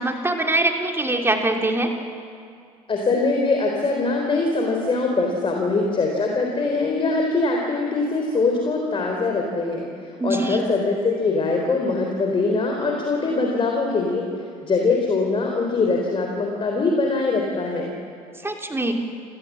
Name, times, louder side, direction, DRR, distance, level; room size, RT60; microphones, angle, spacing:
voice 1, 0.0-1.9 10.2-10.7 18.4-18.9, right 2 dB, 15° right, 3 dB, 2.9 m, -23 dB
voice 2, 2.9-14.2 14.6-17.9, left 3 dB, 30° left, 1 dB, 3.8 m, -22 dB
28.0 x 18.5 x 7.6 m, 2.4 s
figure-of-eight pair, 60°, 18 cm